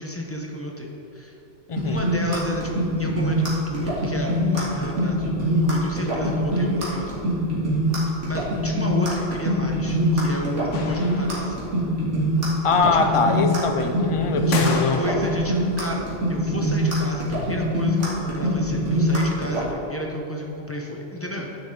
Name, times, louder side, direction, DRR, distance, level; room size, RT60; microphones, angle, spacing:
voice 1, 0.0-1.4 1.8-5.4 5.7-7.2 8.3-11.6 12.8-13.3 14.5-21.6, equal, 15° left, 0 dB, 0.7 m, -32 dB
voice 2, 1.7-2.1 12.6-15.0 17.3-17.5, left 4 dB, 50° left, 6 dB, 0.4 m, -23 dB
sound 1, 1.8-19.7, equal, 75° right, 2.2 m, -23 dB
sound 2, 10.7-11.7 14.5-15.5, left 3 dB, 80° left, 1.1 m, -31 dB
10.0 x 6.5 x 3.9 m, 2.9 s
omnidirectional pair, 1.2 m